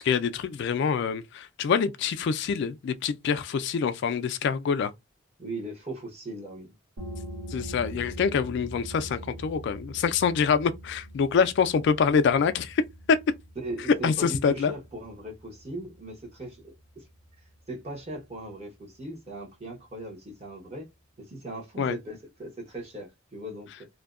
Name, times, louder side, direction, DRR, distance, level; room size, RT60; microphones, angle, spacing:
voice 1, 0.0-4.9 7.5-12.8 13.1-13.2 14.0-14.7 21.8-22.0, left 6 dB, 60° left, 0.3 m, -25 dB
voice 2, 5.4-6.7 13.6-17.0 17.7-20.9 21.2-23.9, right 1 dB, 35° right, 1.0 m, -39 dB
sound 1, 7.0-18.3, equal, 85° right, 1.0 m, -43 dB
2.6 x 2.1 x 2.4 m
head